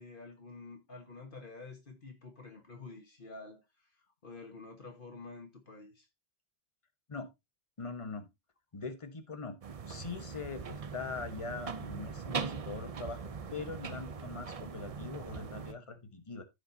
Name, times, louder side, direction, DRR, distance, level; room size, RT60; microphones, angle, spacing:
voice 1, 0.0-3.6 4.2-6.1, left 3 dB, 55° left, 1.6 m, -49 dB
voice 2, 7.8-8.3 8.7-9.6 9.9-16.4, left 4 dB, 30° left, 1.2 m, -42 dB
sound 1, 9.6-15.7, right 5 dB, 40° right, 0.6 m, -41 dB
14.5 x 5.0 x 2.7 m
omnidirectional pair, 1.1 m